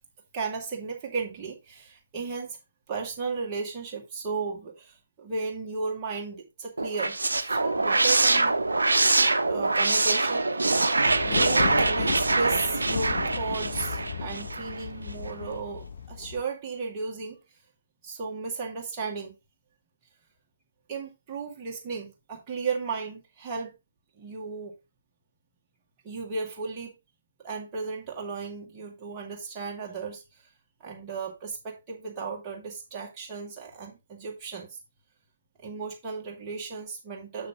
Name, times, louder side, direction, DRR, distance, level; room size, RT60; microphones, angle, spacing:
voice 1, 0.3-2.6 2.9-8.5 9.5-10.5 11.2-17.4 18.0-19.3 20.9-23.7 24.2-24.7 26.0-26.9 27.4-30.2 30.8-34.8 35.6-37.5, right 4 dB, 20° right, 2.2 m, -35 dB
sound 1, 6.8-14.8, right 3 dB, 70° right, 0.8 m, -24 dB
Thunder, 11.1-16.4, left 7 dB, 45° left, 1.0 m, -35 dB
7.3 x 6.5 x 3.6 m
figure-of-eight pair, 130°, 0 cm